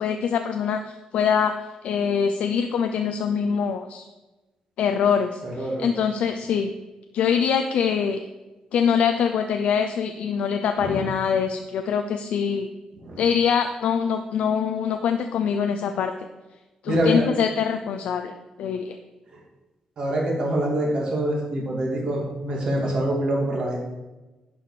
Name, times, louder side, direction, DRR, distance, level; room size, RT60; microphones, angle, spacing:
voice 1, 0.0-1.6 1.8-4.1 4.8-5.4 5.8-6.7 7.1-8.2 8.7-12.7 13.2-16.1 16.8-18.3 18.6-19.0, left 7 dB, 70° left, 6 dB, 0.5 m, -23 dB
voice 2, 5.4-5.9 10.8-11.0 13.0-13.2 16.9-17.3 19.3-19.4 20.0-23.8, right 1 dB, 40° right, -2 dB, 2.3 m, -25 dB
11.0 x 4.9 x 5.0 m, 1.1 s
cardioid pair, 175°, 2 cm